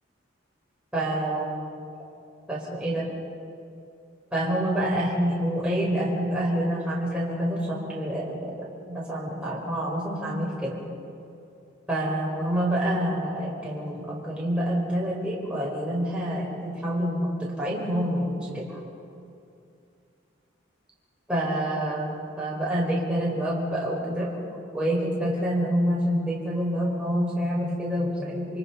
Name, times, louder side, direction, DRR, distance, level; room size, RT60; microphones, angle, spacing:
voice 1, 0.9-1.7 2.5-3.1 4.3-8.5 8.9-10.8 11.9-18.8 21.3-24.4 24.7-28.6, equal, 5° right, -5 dB, 4.8 m, -27 dB
28.0 x 26.0 x 5.5 m, 2.6 s
head